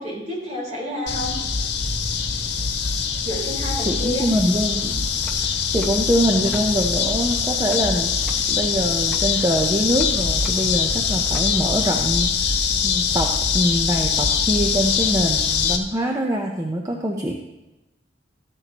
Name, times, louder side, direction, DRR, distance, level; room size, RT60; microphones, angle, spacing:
voice 1, 0.0-1.3 3.2-4.3, left 1 dB, 40° right, -3 dB, 4.5 m, -29 dB
sound 1, 1.1-15.8, left 6 dB, 85° left, 1.3 m, -23 dB
voice 2, 3.9-5.1 5.4-8.1 8.5-17.3, equal, 20° right, 1 dB, 0.8 m, -24 dB
sound 2, 4.3-11.9, left 1 dB, 5° left, 1.4 m, -43 dB
13.5 x 12.5 x 3.0 m, 1.0 s
head